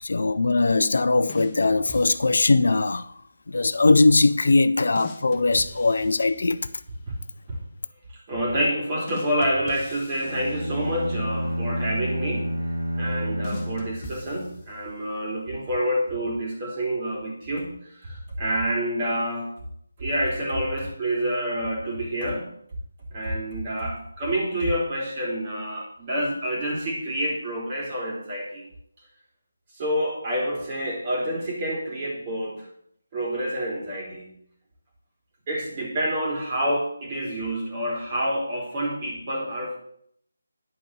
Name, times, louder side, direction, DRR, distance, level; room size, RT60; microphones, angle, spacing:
voice 1, 0.0-3.1 3.5-6.6, left 3 dB, 65° left, 0.6 m, -20 dB
sound 1, 1.3-2.7 5.0-6.9 9.1-11.2 13.4-15.1, left 3 dB, 20° left, 1.5 m, -43 dB
voice 2, 8.3-12.6 12.9-19.5 20.0-22.5 23.1-28.6 29.8-32.7 33.1-34.3 35.5-39.8, equal, 30° right, 3.8 m, -28 dB
sound 2, 10.2-14.6, equal, 65° right, 2.6 m, -30 dB
10.0 x 5.3 x 7.4 m
figure-of-eight pair, 160°, 0 cm